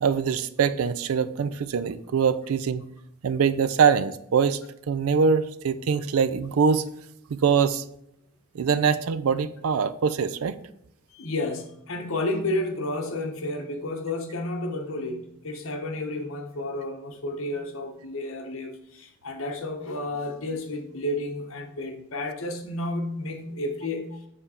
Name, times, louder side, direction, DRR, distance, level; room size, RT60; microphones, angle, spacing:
voice 1, 0.0-2.8 3.2-4.6 4.9-6.8 7.3-7.8 8.5-10.6, right 6 dB, 80° right, 14 dB, 0.4 m, -23 dB
voice 2, 11.1-24.2, left 1 dB, 70° left, 3 dB, 1.0 m, -31 dB
6.9 x 3.4 x 4.2 m, 0.74 s
head